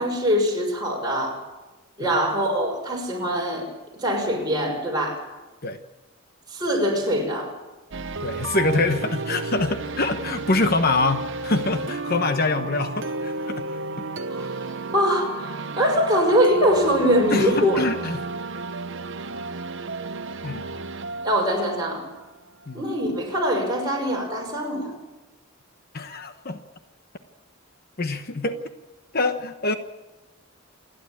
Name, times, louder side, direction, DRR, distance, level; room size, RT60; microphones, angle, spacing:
voice 1, 0.0-1.4 2.0-3.7 3.9-5.3 6.5-7.5 14.3-14.5 14.9-17.8 21.2-22.1 22.7-24.9, equal, 20° right, 0 dB, 5.7 m, -23 dB
sound 1, 7.9-22.8, right 3 dB, 55° right, 0.9 m, -33 dB
voice 2, 8.2-13.7 14.0-14.1 17.3-18.2 20.4-20.6 22.7-22.8 25.9-26.6 28.0-28.6 29.1-29.7, left 3 dB, 45° left, 8 dB, 1.0 m, -25 dB
28.0 x 11.5 x 8.6 m, 1.1 s
head